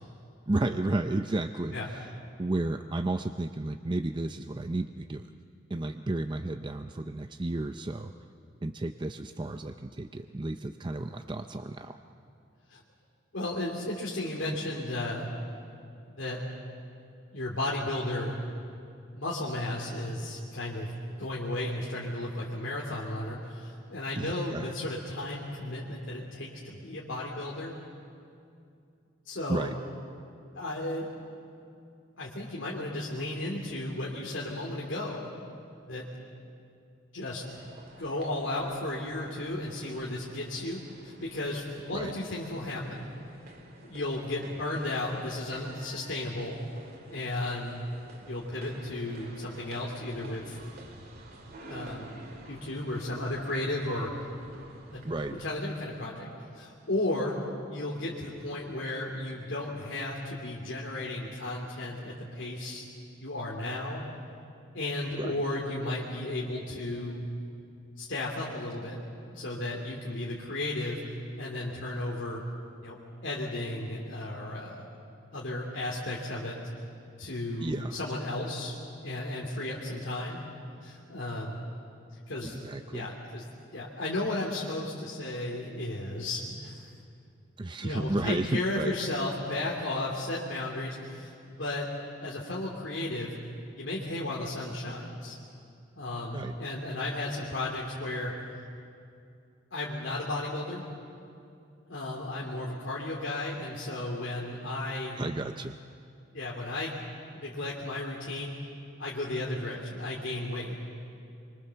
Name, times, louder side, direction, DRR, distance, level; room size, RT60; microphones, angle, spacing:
voice 1, 0.5-2.1 2.4-5.3 5.7-8.1 8.6-12.0 24.1-24.7 29.5-29.8 41.9-42.1 55.0-55.4 65.1-65.4 77.6-78.0 82.4-83.1 87.6-88.9 96.3-96.6 105.2-105.8, right 2 dB, 25° right, 7 dB, 0.5 m, -32 dB
voice 2, 13.3-15.3 16.1-16.4 17.3-18.4 19.1-20.9 21.2-27.7 29.3-29.7 30.5-31.1 32.2-35.3 35.8-36.0 37.1-37.4 38.0-43.1 43.8-46.6 47.1-47.9 48.2-50.6 51.7-52.1 52.5-54.1 54.9-55.1 55.4-56.3 56.5-57.4 57.7-62.9 63.2-64.0 64.7-67.2 68.0-69.0 69.3-71.0 71.4-72.4 72.8-73.0 73.2-74.8 75.3-76.6 77.2-78.8 79.0-80.4 80.8-81.6 82.3-82.6 82.9-83.4 83.7-86.8 87.8-91.9 92.2-93.3 93.8-95.4 95.9-98.3 99.7-100.8 101.9-105.2 106.3-106.9 107.3-108.5 109.0-110.8, left 1 dB, 75° left, -4 dB, 2.7 m, -34 dB
sound 1, 37.4-55.5, right 2 dB, 50° right, 2.6 m, -50 dB
26.0 x 24.0 x 7.0 m, 2.5 s
head